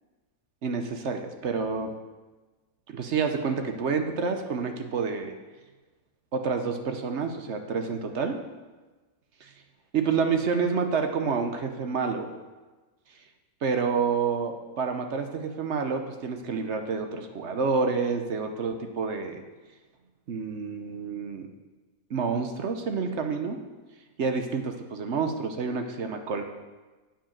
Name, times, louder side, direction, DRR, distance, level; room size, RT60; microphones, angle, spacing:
voice 1, 0.6-1.9 2.9-5.3 6.3-8.4 9.4-9.5 9.9-12.3 13.6-19.4 20.3-21.5 22.1-23.6 24.2-26.4, right 5 dB, 60° right, 6 dB, 1.0 m, -28 dB
8.7 x 5.0 x 7.1 m, 1.2 s
omnidirectional pair, 1.5 m